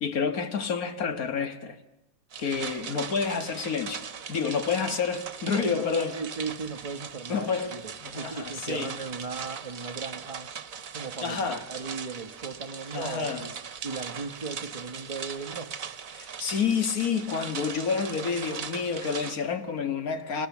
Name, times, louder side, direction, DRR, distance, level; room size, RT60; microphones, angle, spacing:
voice 1, 0.0-1.8 2.4-6.2 7.3-8.9 11.2-11.7 12.9-13.5 16.1-20.5, left 6 dB, 60° left, 2.1 m, -29 dB
sound 1, 2.3-19.4, right 7 dB, 55° right, 1.6 m, -40 dB
voice 2, 5.5-10.5 10.9-13.5 13.8-15.7, right 4 dB, 25° right, 1.0 m, -37 dB
29.5 x 24.5 x 7.2 m
omnidirectional pair, 1.8 m